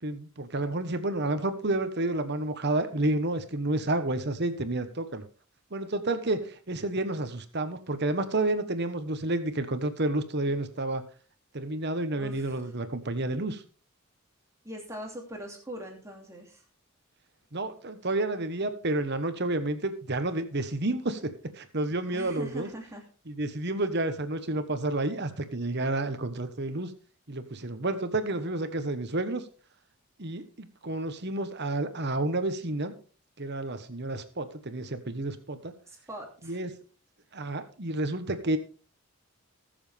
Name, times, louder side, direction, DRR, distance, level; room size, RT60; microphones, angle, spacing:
voice 1, 0.0-5.2 5.7-11.0 11.5-13.6 17.5-21.3 21.6-22.7 23.3-26.9 27.3-29.4 30.2-32.9 33.4-35.7 36.4-36.7 37.3-38.6, right 2 dB, 50° right, 10 dB, 1.2 m, -30 dB
voice 2, 12.2-12.6 14.6-16.6 22.1-23.0 35.9-36.6, equal, 15° right, 1 dB, 2.8 m, -41 dB
20.0 x 7.2 x 3.5 m, 0.39 s
head